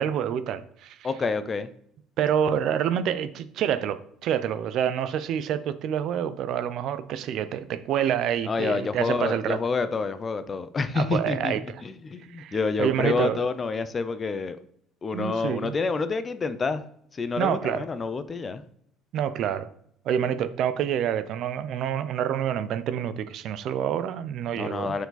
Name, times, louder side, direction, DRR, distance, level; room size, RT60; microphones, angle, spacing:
voice 1, 0.0-1.1 2.2-9.6 10.9-11.6 12.4-13.4 15.1-15.8 17.4-17.9 19.1-19.7 20.1-25.0, right 9 dB, 55° right, 0.4 m, -27 dB
voice 2, 1.0-1.7 8.5-14.6 15.0-16.8 17.1-18.6 24.5-25.1, left 4 dB, 20° left, 0.4 m, -28 dB
6.6 x 4.6 x 4.0 m
cardioid pair, 155°, 0 cm